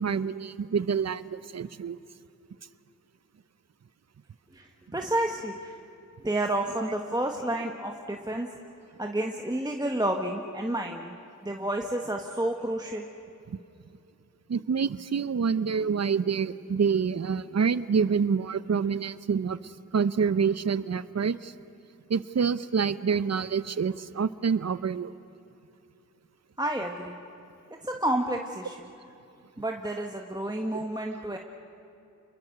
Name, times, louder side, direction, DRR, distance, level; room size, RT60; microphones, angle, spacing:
voice 1, 0.0-2.0 13.5-13.6 14.5-21.5 22.1-25.1, right 6 dB, 55° right, 15 dB, 0.7 m, -27 dB
voice 2, 4.9-5.7 6.2-8.5 9.0-11.2 11.4-13.0 26.6-27.2 27.8-28.8 29.6-31.4, right 1 dB, 10° right, 2 dB, 1.5 m, -30 dB
29.0 x 22.0 x 6.8 m, 2.7 s
wide cardioid pair, 70°, 32 cm